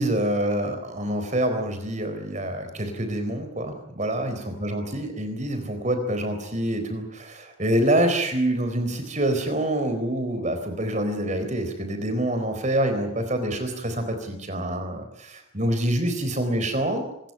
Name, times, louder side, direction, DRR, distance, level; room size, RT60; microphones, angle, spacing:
voice 1, 0.0-17.0, right 1 dB, 35° right, 7 dB, 4.1 m, -26 dB
26.0 x 14.0 x 9.7 m, 0.80 s
head